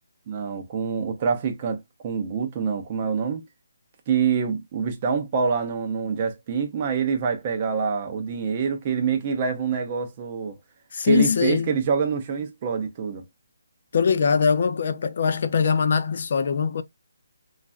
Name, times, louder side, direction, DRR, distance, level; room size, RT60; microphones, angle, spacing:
voice 1, 0.3-3.4 4.1-10.6 11.0-13.2, right 6 dB, 25° right, 0.5 m, -26 dB
voice 2, 10.9-11.7 13.9-16.8, left 6 dB, 40° left, 0.4 m, -22 dB
3.1 x 2.4 x 2.4 m
hypercardioid pair, 175°, 0 cm